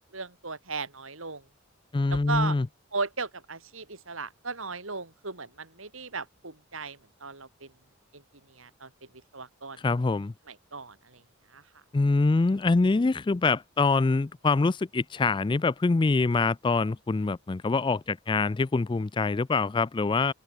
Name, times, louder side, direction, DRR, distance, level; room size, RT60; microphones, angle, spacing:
voice 1, 0.1-1.4 2.1-2.6 2.9-7.7 8.1-8.2 8.5-8.9 9.3-9.8 10.5-11.2 11.5-11.6, right 4 dB, 70° right, 4.0 m, -36 dB
voice 2, 1.9-2.7 9.8-10.3 11.9-20.3, left 3 dB, 20° left, 0.3 m, -25 dB
open air
head